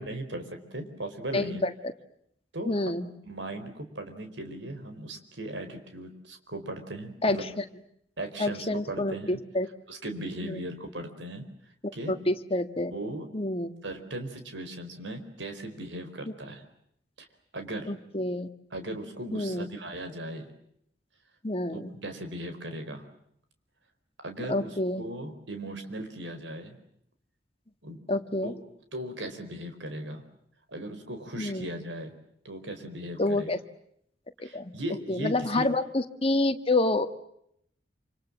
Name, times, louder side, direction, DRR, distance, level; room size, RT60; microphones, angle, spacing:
voice 1, 0.0-1.6 2.5-2.9 3.2-7.5 8.2-9.4 9.9-11.4 11.9-12.1 12.9-13.3 13.8-16.6 17.2-17.3 17.5-17.9 18.7-20.5 22.0-23.0 24.2-26.8 27.8-28.0 28.4-28.6 28.9-30.2 30.7-32.1 32.4-33.5 34.4-35.7, right 1 dB, 80° right, 7 dB, 4.6 m, -38 dB
voice 2, 1.3-1.7 2.6-3.1 7.2-7.6 8.4-9.7 10.4-10.6 12.1-12.9 13.3-13.7 17.9-18.5 19.3-19.7 21.4-21.9 24.5-25.0 28.1-28.5 31.4-31.7 33.2-33.6 34.4-34.7 35.1-37.1, left 2 dB, 30° left, 8 dB, 1.7 m, -28 dB
27.5 x 27.0 x 7.5 m, 0.74 s
head